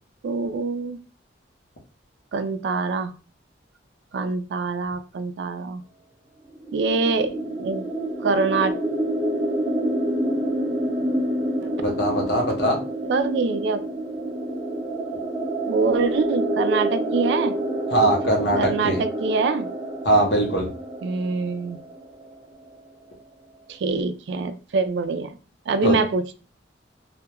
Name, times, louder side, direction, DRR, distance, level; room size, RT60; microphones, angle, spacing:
voice 1, 0.2-1.0 2.3-3.1 4.1-5.8 6.7-7.8 8.2-8.7 13.0-13.8 15.7-17.5 18.5-19.7 21.0-21.8 23.7-25.4 25.7-26.4, right 4 dB, 65° right, 9 dB, 0.3 m, -24 dB
sound 1, 6.6-22.3, right 1 dB, 5° right, 0.5 m, -28 dB
voice 2, 11.8-12.8 17.9-18.6 18.8-19.0 20.0-20.7 25.8-25.9, right 1 dB, 55° left, 0 dB, 0.7 m, -21 dB
2.2 x 2.1 x 2.9 m, 0.34 s
head